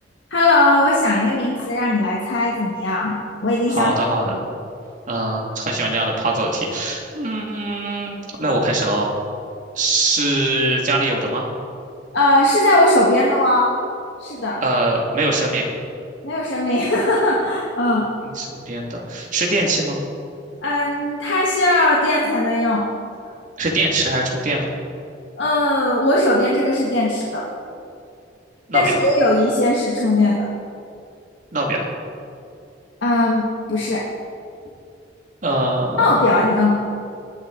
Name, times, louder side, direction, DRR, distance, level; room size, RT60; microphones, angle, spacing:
voice 1, 0.3-3.9 4.3-4.4 12.1-13.7 14.2-14.6 16.2-18.1 20.6-22.8 25.4-27.5 28.7-30.5 33.0-34.0 36.0-36.7, left 1 dB, 65° left, -4 dB, 1.5 m, -18 dB
voice 2, 3.7-4.4 5.1-9.1 9.7-11.4 14.6-15.6 18.2-20.0 23.6-24.7 28.7-29.0 31.5-31.9 35.4-36.1, right 2 dB, 45° right, -1 dB, 2.1 m, -22 dB
20.0 x 9.8 x 3.8 m, 2.5 s
head